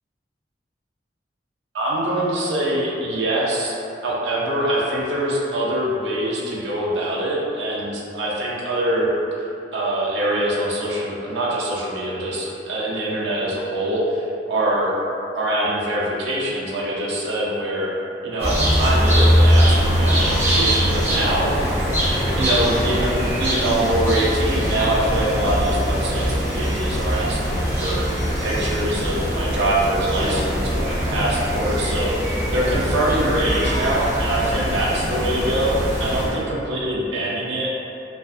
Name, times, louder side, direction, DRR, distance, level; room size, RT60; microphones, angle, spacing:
voice 1, 1.7-3.8 4.0-9.1 9.3-9.4 9.7-15.0 15.3-17.9 18.2-21.8 22.4-37.7, right 1 dB, 75° right, -5 dB, 0.4 m, -24 dB
sound 1, 18.4-36.4, equal, 15° right, 0.5 m, -21 dB
2.3 x 2.2 x 2.5 m, 2.6 s
head